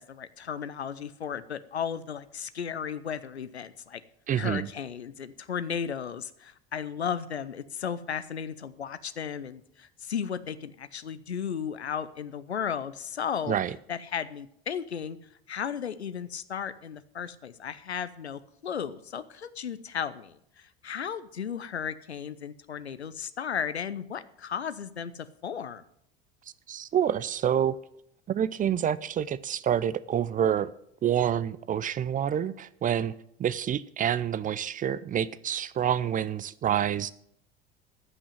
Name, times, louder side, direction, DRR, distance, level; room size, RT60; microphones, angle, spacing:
voice 1, 0.0-4.0 4.3-13.6 13.9-15.2 15.5-25.8, left 7 dB, 85° left, 0.7 m, -35 dB
voice 2, 4.3-4.7 13.5-13.7 26.7-27.7 28.3-30.7 31.0-33.1 33.4-37.1, right 9 dB, 25° right, 0.5 m, -27 dB
14.0 x 6.2 x 7.8 m
figure-of-eight pair, 65°, 32 cm